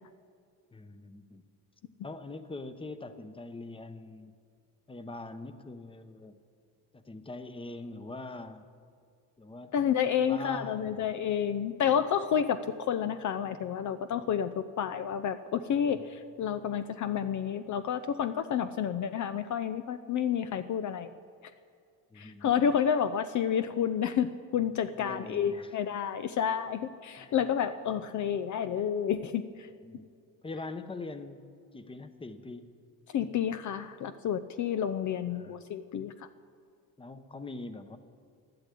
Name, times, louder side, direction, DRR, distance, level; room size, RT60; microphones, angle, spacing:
voice 1, 0.7-1.4 2.0-4.3 4.9-6.3 6.9-8.7 9.4-9.8 10.2-11.1 15.9-16.0 22.1-22.5 25.0-25.8 27.2-27.4 29.8-30.1 30.4-31.4 31.7-32.8 35.3-35.6 37.0-38.0, left 2 dB, 15° left, 10 dB, 0.9 m, -43 dB
voice 2, 9.7-21.1 22.2-29.7 33.1-36.3, left 8 dB, 50° left, 10 dB, 0.6 m, -30 dB
12.0 x 11.5 x 8.4 m, 2.3 s
cardioid pair, 105°, 37 cm